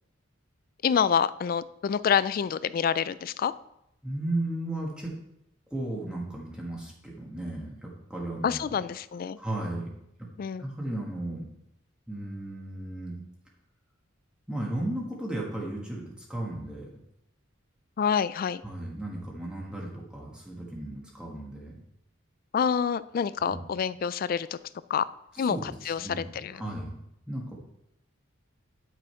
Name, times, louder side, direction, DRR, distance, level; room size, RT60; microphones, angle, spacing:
voice 1, 0.8-3.5 8.4-9.4 10.4-10.6 18.0-18.6 22.5-24.6 24.9-25.1 25.4-26.6, left 7 dB, 45° left, 17 dB, 0.3 m, -27 dB
voice 2, 4.0-5.1 5.7-8.8 9.4-9.9 10.6-11.4 12.1-13.1 14.5-16.0 16.3-16.9 18.6-21.8 23.4-23.6 25.4-26.2 26.5-27.0 27.3-27.5, right 1 dB, 5° right, -3 dB, 1.5 m, -35 dB
10.0 x 6.3 x 4.4 m, 0.82 s
head